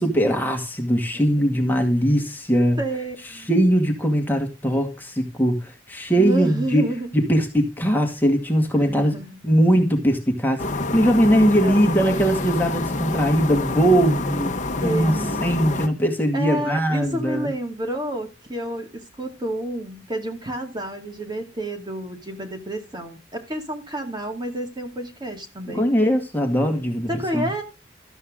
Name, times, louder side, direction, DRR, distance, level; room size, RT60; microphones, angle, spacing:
voice 1, 0.0-2.8 3.5-6.8 7.1-9.1 9.4-10.7 10.9-14.5 14.8-15.1 15.4-17.5 25.7-27.5, equal, 10° left, 2.1 m, -20 dB
voice 2, 2.8-3.5 6.2-7.1 8.7-9.3 11.6-11.7 12.0-12.1 14.8-15.4 16.3-25.9 27.1-27.6, right 1 dB, 25° right, 2.4 m, -30 dB
sound 1, 10.6-15.9, left 2 dB, 40° left, 1.1 m, -27 dB
13.0 x 8.4 x 3.7 m
head